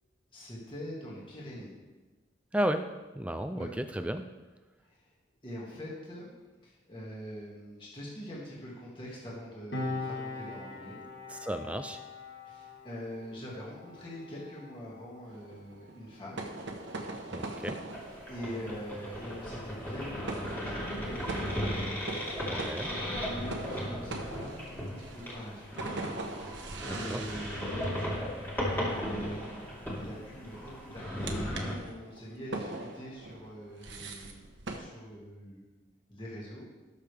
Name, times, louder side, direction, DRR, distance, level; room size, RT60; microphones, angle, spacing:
voice 1, 0.3-1.7 3.5-3.7 4.8-5.1 5.4-6.3 6.6-11.0 12.4-16.4 18.3-21.6 23.2-26.0 26.4-28.1 28.5-35.7 36.1-36.7, equal, 25° left, -5 dB, 2.2 m, -44 dB
voice 2, 2.5-4.3 11.3-12.0 17.3-17.8 22.5-22.9 27.1-27.2, equal, 5° right, 8 dB, 0.4 m, -33 dB
Piano, 9.7-16.7 17.0-17.2, left 2 dB, 60° left, 1.6 m, -42 dB
sound 1, 15.3-34.8, right 2 dB, 80° right, 1.3 m, -43 dB
sound 2, 17.9-31.8, equal, 10° left, 2.4 m, -36 dB
18.0 x 6.6 x 3.5 m, 1.2 s
head